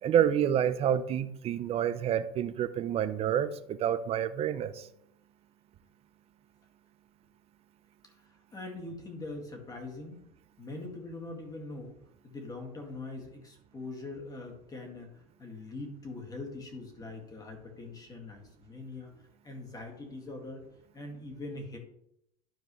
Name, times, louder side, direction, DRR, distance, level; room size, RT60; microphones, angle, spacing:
voice 1, 0.0-4.9, right 9 dB, 30° right, 13 dB, 0.5 m, -28 dB
voice 2, 8.3-10.2 10.6-12.0 12.2-19.1 19.4-20.6 20.9-21.8, left 2 dB, 20° left, 2 dB, 2.0 m, -42 dB
12.0 x 4.6 x 3.2 m, 0.78 s
supercardioid pair, 120°, 20 cm